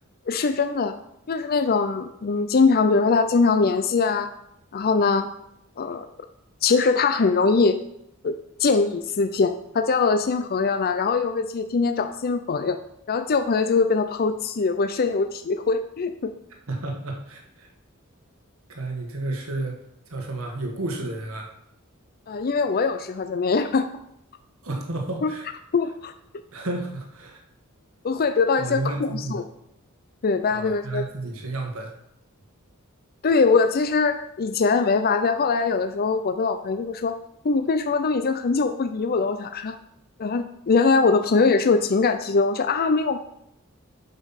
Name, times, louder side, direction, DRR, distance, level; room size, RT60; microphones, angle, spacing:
voice 1, 0.3-1.0 1.3-4.3 4.7-5.3 5.8-6.1 6.6-7.8 8.2-8.3 8.6-12.8 13.1-16.3 22.3-23.9 25.2-25.3 25.7-26.1 28.0-29.4 30.2-31.0 33.2-37.1 37.4-39.7 40.2-43.2, left 4 dB, 45° left, 9 dB, 0.5 m, -22 dB
voice 2, 16.7-17.7 18.7-21.5 24.6-25.5 26.5-27.4 28.6-29.4 30.5-31.9, right 2 dB, 70° right, 1 dB, 1.5 m, -31 dB
8.1 x 5.3 x 5.7 m, 0.77 s
head